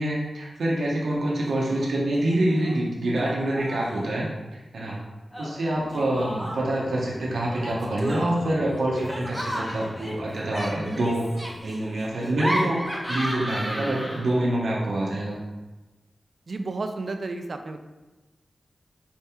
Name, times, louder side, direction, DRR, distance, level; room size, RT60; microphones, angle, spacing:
voice 1, 0.0-4.3 4.5-5.0 5.4-11.3 11.6-12.8 13.1-15.4, right 1 dB, 90° right, -4 dB, 0.7 m, -26 dB
Laughter, 1.4-1.9 2.2-2.8 3.2-4.0 5.3-6.8 7.5-14.5, equal, 5° left, 0.9 m, -33 dB
sound 1, 5.7-11.6, left 1 dB, 50° left, 0.5 m, -43 dB
voice 2, 16.5-17.8, right 3 dB, 60° right, 6 dB, 0.4 m, -32 dB
4.3 x 2.8 x 3.5 m, 1.1 s
cardioid pair, 60°, 0 cm